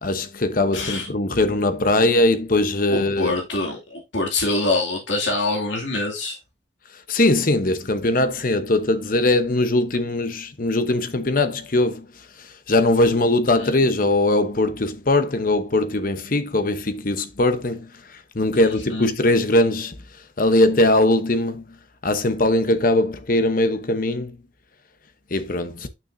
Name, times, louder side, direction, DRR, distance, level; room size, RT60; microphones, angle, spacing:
voice 1, 0.0-3.3 7.1-12.1 12.4-20.0 20.4-21.6 22.0-24.4 25.3-25.9, left 2 dB, 50° left, 0.9 m, -20 dB
voice 2, 0.7-1.1 2.9-6.4 13.6-13.7 18.5-19.1, left 2 dB, 85° left, 2.5 m, -25 dB
9.2 x 6.0 x 2.7 m
head